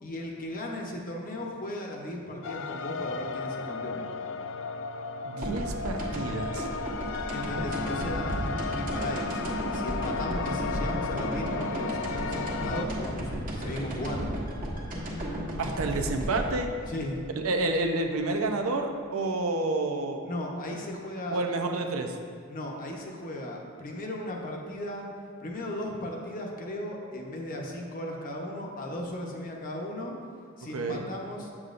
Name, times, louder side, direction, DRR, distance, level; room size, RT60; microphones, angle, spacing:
voice 1, 0.0-4.0 7.3-8.3 8.7-14.4 16.9-17.2 20.2-21.4 22.5-25.1 25.4-30.1 30.6-31.5, left 1 dB, 40° left, 0 dB, 0.9 m, -36 dB
sound 1, 2.4-12.8, left 4 dB, 65° left, 0.3 m, -34 dB
voice 2, 5.3-6.7 15.6-16.7 17.4-20.2 21.3-22.2 30.7-31.1, right 2 dB, 85° right, 4 dB, 0.6 m, -29 dB
sound 2, 5.4-18.2, right 1 dB, 45° right, 1.2 m, -34 dB
8.0 x 7.2 x 2.5 m, 2.1 s
head